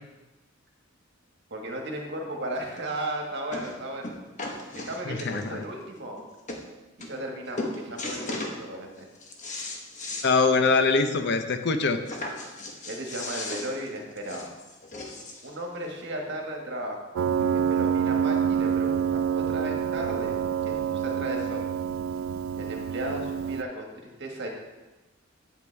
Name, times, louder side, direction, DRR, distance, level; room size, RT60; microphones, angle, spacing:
voice 1, 1.5-4.2 4.7-6.2 7.0-9.1 12.8-14.5 15.4-17.0 17.4-20.3 20.6-21.7 22.5-24.5, right 1 dB, 60° right, 1 dB, 1.6 m, -35 dB
sound 1, 2.8-2.9 3.5-3.8 4.0-5.6 6.2-6.3 6.5-6.6 7.0-7.3 7.6-8.6 9.0-10.3 10.7-10.8 11.1-11.2 12.1-15.5 16.3-16.4, left 2 dB, 40° left, 1.1 m, -36 dB
voice 2, 5.1-5.6 10.2-12.0, left 4 dB, 60° left, 8 dB, 0.7 m, -23 dB
Piano, 17.2-23.6, right 8 dB, 85° right, 0.3 m, -27 dB
8.9 x 8.4 x 3.4 m, 1.1 s
head